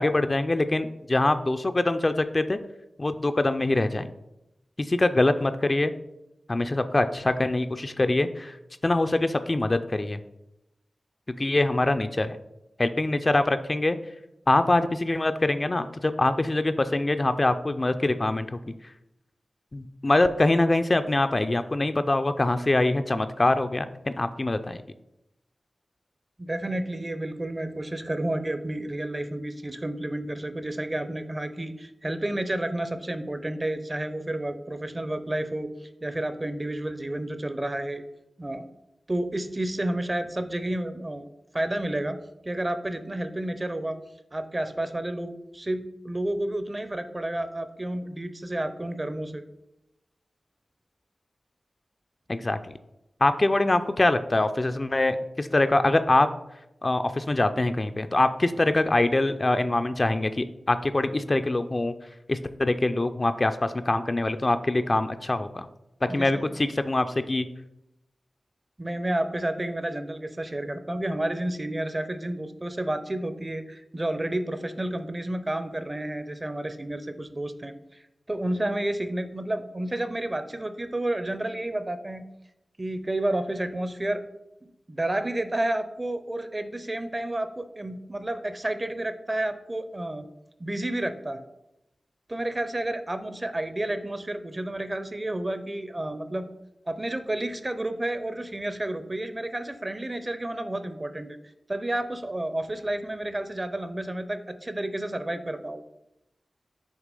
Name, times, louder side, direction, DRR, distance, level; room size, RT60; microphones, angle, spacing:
voice 1, 0.0-2.6 3.0-4.1 4.8-5.9 6.5-8.5 8.8-10.2 11.4-12.4 12.8-14.0 14.5-18.5 19.7-24.8 52.3-52.6 53.2-56.3 56.8-61.9 62.3-65.7 66.1-67.5, left 2 dB, 40° left, 9 dB, 0.4 m, -24 dB
voice 2, 26.4-38.0 38.4-38.6 39.1-41.3 41.5-42.2 42.4-44.0 44.3-49.4 66.0-66.5 68.8-82.2 82.8-84.2 84.6-90.3 90.6-91.4 92.3-96.5 96.9-101.3 101.7-105.8, right 1 dB, 30° right, 10 dB, 0.5 m, -31 dB
6.3 x 2.9 x 5.3 m, 0.88 s
cardioid pair, 55°, 0 cm